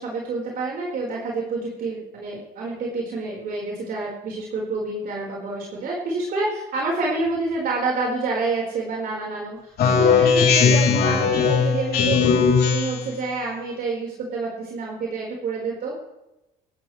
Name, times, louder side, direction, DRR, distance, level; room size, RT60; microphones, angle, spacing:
voice 1, 0.0-9.7 10.0-15.9, right 3 dB, 60° right, -3 dB, 4.6 m, -28 dB
Speech synthesizer, 9.8-13.1, left 5 dB, 65° left, 3.5 m, -18 dB
19.5 x 13.5 x 3.3 m, 0.91 s
cardioid pair, 110°, 17 cm